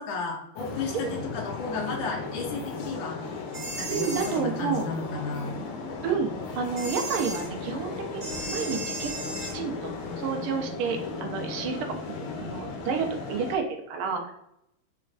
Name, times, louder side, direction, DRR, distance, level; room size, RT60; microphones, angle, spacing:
voice 1, 0.0-3.2 3.8-5.6, left 4 dB, 75° left, 0 dB, 1.3 m, -33 dB
sound 1, 0.6-13.6, left 4 dB, 90° left, 1.5 m, -36 dB
sound 2, 3.5-4.4 6.8-7.5 8.2-9.6, right 2 dB, 50° right, 0.8 m, -36 dB
voice 2, 3.9-4.8 6.0-9.1 9.5-14.3, right 6 dB, 85° right, 4 dB, 1.5 m, -30 dB
3.9 x 3.2 x 2.4 m, 0.79 s
omnidirectional pair, 2.3 m